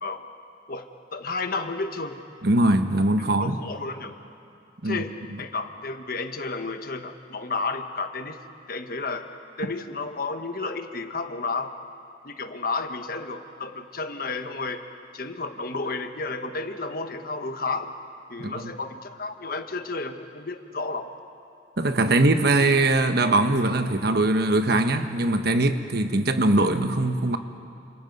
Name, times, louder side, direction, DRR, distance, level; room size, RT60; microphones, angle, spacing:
voice 1, 0.7-2.2 3.4-4.2 4.8-5.1 5.4-8.4 8.7-9.3 9.6-11.7 12.2-14.8 15.1-17.9 18.3-21.1, left 3 dB, 50° left, 7 dB, 1.4 m, -32 dB
voice 2, 2.4-3.6 4.8-5.0 5.3-5.4 18.4-18.7 21.8-27.4, right 2 dB, 60° right, 8 dB, 1.2 m, -21 dB
29.5 x 27.0 x 5.5 m, 2.5 s
head